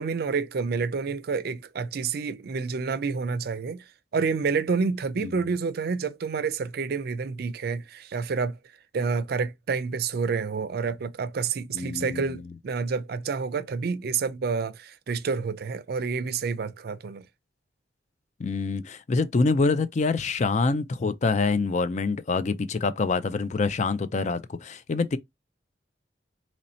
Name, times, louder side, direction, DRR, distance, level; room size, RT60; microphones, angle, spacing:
voice 1, 0.0-3.8 4.1-8.6 8.9-17.2, right 5 dB, 60° right, 0.4 m, -29 dB
voice 2, 11.7-12.4 18.4-25.2, left 4 dB, 40° left, 0.4 m, -26 dB
3.0 x 2.7 x 4.2 m
head